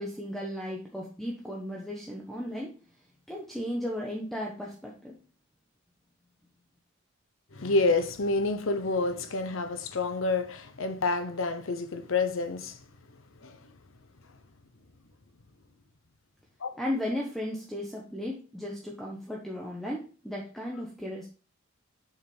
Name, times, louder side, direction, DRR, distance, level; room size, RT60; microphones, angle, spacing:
voice 1, 0.0-2.7 3.3-5.2 16.8-21.3, left 1 dB, ahead, 1.1 m, -35 dB
voice 2, 7.5-12.8 13.4-13.6 16.6-16.7, left 3 dB, 85° left, 0.9 m, -28 dB
7.3 x 5.8 x 3.4 m
head